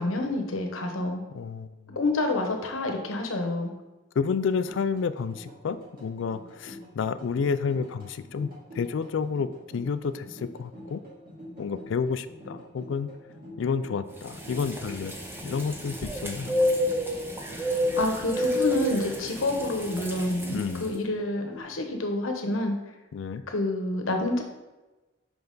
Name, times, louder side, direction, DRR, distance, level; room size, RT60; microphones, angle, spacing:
voice 1, 0.0-1.2 1.9-3.7 18.0-22.8 23.5-24.4, left 2 dB, 90° left, 4 dB, 1.0 m, -28 dB
voice 2, 1.3-2.0 4.2-11.0 11.6-13.1 13.6-15.1 15.4-16.6 20.5-20.9 23.1-23.4, left 5 dB, 65° left, 13 dB, 0.3 m, -30 dB
sound 1, 4.4-21.6, left 1 dB, 45° right, 2.3 m, -46 dB
sound 2, 14.2-20.9, left 1 dB, 10° right, 0.7 m, -30 dB
5.7 x 5.5 x 3.8 m, 1.1 s
head